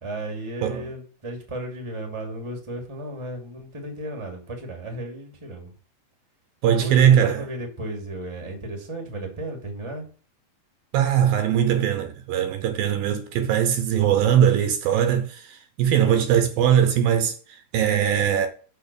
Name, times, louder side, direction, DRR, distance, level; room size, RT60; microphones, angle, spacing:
voice 1, 0.0-5.7 6.6-10.1, right 1 dB, 10° right, 1.7 m, -34 dB
voice 2, 0.6-0.9 6.6-7.5 10.9-18.5, right 9 dB, 75° right, 2.5 m, -20 dB
7.1 x 6.4 x 6.8 m
omnidirectional pair, 4.5 m